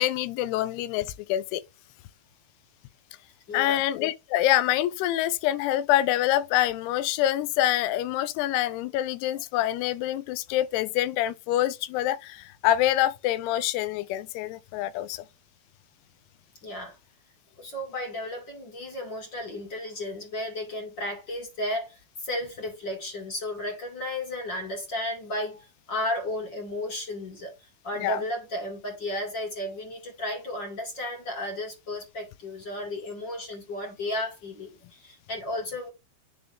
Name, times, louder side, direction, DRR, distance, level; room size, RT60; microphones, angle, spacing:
voice 1, 0.0-1.6 3.5-15.2 28.0-28.2, left 13 dB, 90° left, 2.7 m, -26 dB
voice 2, 3.5-3.8 16.6-17.0 17.6-27.5 27.8-35.9, left 1 dB, 35° left, 2.2 m, -33 dB
9.3 x 3.6 x 3.5 m
omnidirectional pair, 4.6 m